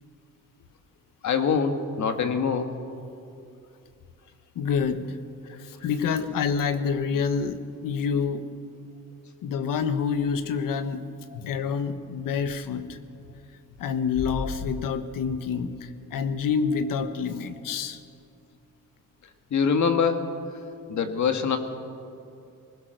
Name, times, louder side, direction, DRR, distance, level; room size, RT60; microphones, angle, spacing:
voice 1, 1.2-2.7 5.5-5.6 11.3-11.4 19.5-20.4 20.9-21.6, left 6 dB, 60° left, 7 dB, 1.8 m, -24 dB
voice 2, 4.5-5.2 5.5-8.5 9.4-11.0 11.3-13.0 13.8-18.0, left 6 dB, 85° left, 10 dB, 1.3 m, -27 dB
20.5 x 19.5 x 6.6 m, 2.5 s
cardioid pair, 120°, 32 cm